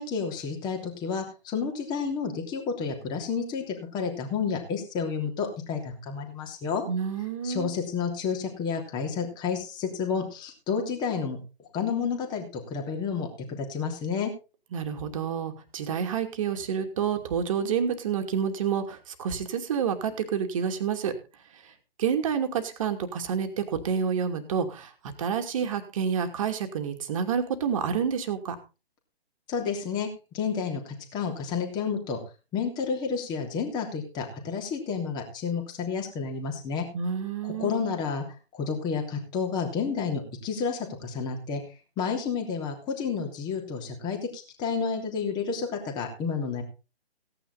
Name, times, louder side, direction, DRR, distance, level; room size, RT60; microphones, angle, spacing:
voice 1, 0.0-6.8 7.4-11.4 11.7-14.3 29.5-30.1 30.3-32.2 32.5-36.8 37.4-38.2 38.5-41.6 42.0-46.6, left 6 dB, 15° left, 3 dB, 3.0 m, -30 dB
voice 2, 6.9-7.7 14.7-21.1 21.5-21.7 22.0-24.9 25.2-28.6 36.9-37.7, right 7 dB, 30° right, 5 dB, 2.6 m, -29 dB
17.0 x 10.0 x 4.1 m, 0.31 s
figure-of-eight pair, 145°, 32 cm